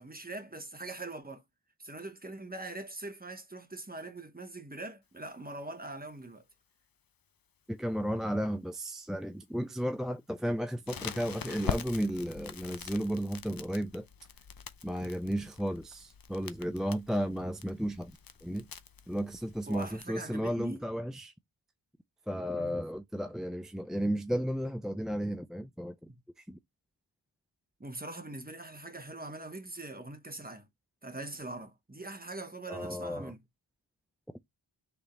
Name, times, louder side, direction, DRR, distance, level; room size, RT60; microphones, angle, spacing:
voice 1, 0.0-1.4 1.8-6.4 19.7-20.8 22.5-22.8 26.1-26.2 27.8-30.7 31.0-33.4, right 2 dB, 20° right, 1.0 m, -42 dB
voice 2, 7.7-14.1 14.8-18.1 18.4-18.7 19.1-21.3 22.3-26.0 26.4-26.6 32.7-33.3, equal, ahead, 0.3 m, -33 dB
Crackle, 10.9-20.0, left 7 dB, 50° left, 0.6 m, -43 dB
3.6 x 3.4 x 4.2 m
wide cardioid pair, 45°, 47 cm